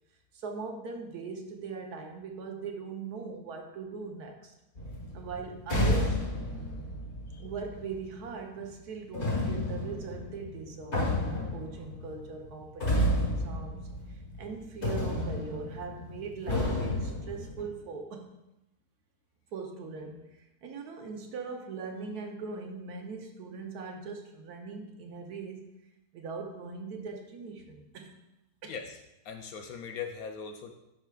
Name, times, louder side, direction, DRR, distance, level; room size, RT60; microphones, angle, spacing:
voice 1, 0.3-4.5 5.1-6.2 7.4-18.3 19.5-25.6 26.1-28.2 28.6-28.7, right 4 dB, 70° right, 3 dB, 1.3 m, -41 dB
sound 1, 4.8-8.1 9.1-14.5 14.8-17.6, left 1 dB, 45° left, 1.6 m, -31 dB
voice 2, 28.6-29.0 29.2-30.8, left 6 dB, 70° left, 5 dB, 0.9 m, -40 dB
11.0 x 4.6 x 2.3 m, 0.91 s
omnidirectional pair, 1.8 m